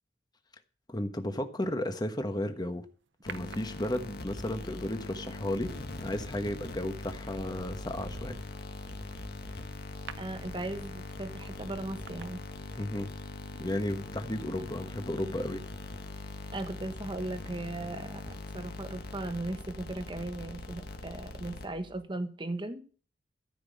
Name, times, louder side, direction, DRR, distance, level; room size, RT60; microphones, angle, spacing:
voice 1, 0.9-2.9 3.2-5.7 6.0-8.4 12.8-13.1 13.6-15.6, left 1 dB, 25° left, 7 dB, 1.2 m, -34 dB
sound 1, 3.3-22.0, left 2 dB, 60° left, 1.8 m, -42 dB
sound 2, 3.3-4.3 6.2-6.5 6.9-13.1 13.4-13.5, right 5 dB, 80° right, 0.8 m, -49 dB
voice 2, 10.2-12.4 16.5-22.8, right 2 dB, 25° right, 8 dB, 1.3 m, -37 dB
14.0 x 6.0 x 8.5 m, 0.41 s
head